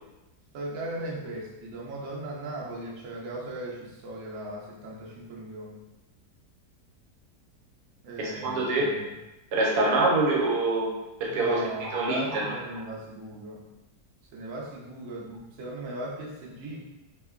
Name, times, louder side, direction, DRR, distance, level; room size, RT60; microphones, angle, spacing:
voice 1, 0.5-5.7 8.0-9.0 11.3-13.6 14.3-16.9, right 1 dB, 65° right, -3 dB, 0.8 m, -37 dB
voice 2, 8.2-8.9 9.5-10.9 11.2-12.5, right 2 dB, 85° right, -2 dB, 1.2 m, -25 dB
2.9 x 2.1 x 2.3 m, 1.0 s
omnidirectional pair, 1.7 m